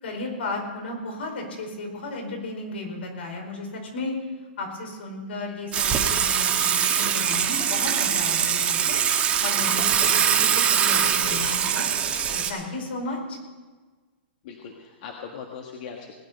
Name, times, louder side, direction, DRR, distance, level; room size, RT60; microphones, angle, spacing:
voice 1, 0.0-4.2 4.6-9.0 9.4-11.9 12.3-13.4, left 2 dB, 75° left, 1 dB, 4.7 m, -34 dB
Water / Water tap faucet / Sink (filling or washing), 5.7-12.5, right 8 dB, 20° right, 1.4 m, -22 dB
voice 2, 14.4-16.1, left 6 dB, 50° left, 2 dB, 1.5 m, -40 dB
19.5 x 9.1 x 5.6 m, 1.3 s
hypercardioid pair, 150°, 6 cm